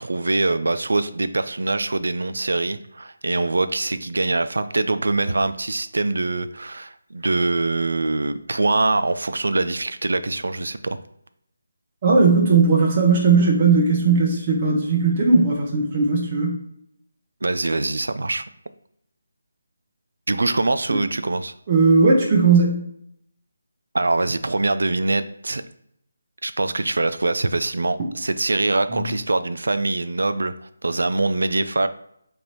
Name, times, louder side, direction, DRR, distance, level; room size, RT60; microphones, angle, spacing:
voice 1, 0.0-11.0 17.4-18.4 20.3-21.5 23.9-25.6 26.4-31.9, right 2 dB, 75° right, 11 dB, 0.3 m, -23 dB
voice 2, 12.0-16.6 20.9-21.0 21.7-22.8 28.9-29.1, right 4 dB, 35° right, -2 dB, 0.7 m, -17 dB
3.2 x 2.5 x 4.4 m, 0.72 s
figure-of-eight pair, 155°, 0 cm